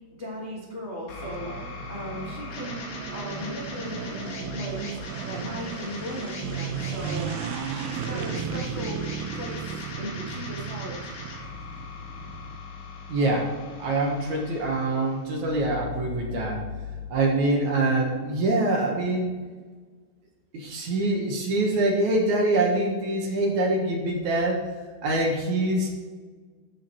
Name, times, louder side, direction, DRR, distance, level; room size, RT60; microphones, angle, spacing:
voice 1, 0.2-1.5 1.9-2.8 3.1-5.0 5.3-7.3 7.7-9.0 9.3-11.0, equal, 45° left, -5 dB, 0.8 m, -37 dB
sound 1, 1.1-17.1, left 5 dB, 80° left, 3.8 m, -40 dB
sound 2, 1.2-12.6, right 8 dB, 80° right, 2.3 m, -35 dB
voice 2, 13.1-13.5 13.8-16.6 17.1-19.3 20.5-24.6 25.0-25.9, right 2 dB, 60° right, 0 dB, 2.5 m, -24 dB
14.0 x 5.0 x 4.5 m, 1.5 s
omnidirectional pair, 4.3 m